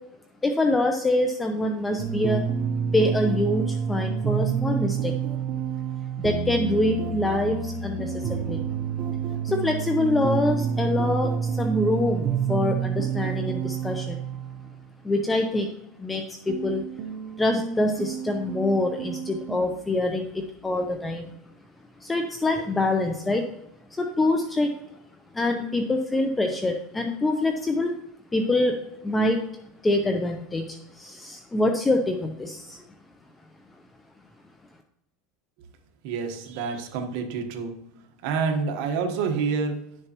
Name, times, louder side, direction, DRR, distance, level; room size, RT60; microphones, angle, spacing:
voice 1, 0.4-2.4 2.9-5.1 6.2-8.6 9.4-14.2 15.0-15.7 16.0-16.8 17.4-21.3 22.0-23.5 23.9-24.7 25.3-27.9 28.3-28.8 29.0-29.4 29.8-32.8, left 2 dB, 10° left, 4 dB, 0.7 m, -25 dB
sound 1, 2.0-14.8 16.5-19.6, right 7 dB, 40° right, 0.8 m, -29 dB
voice 2, 36.0-37.8 38.2-40.0, right 5 dB, 65° right, 5 dB, 1.3 m, -28 dB
11.0 x 6.6 x 3.0 m, 0.83 s
supercardioid pair, 135°, 0 cm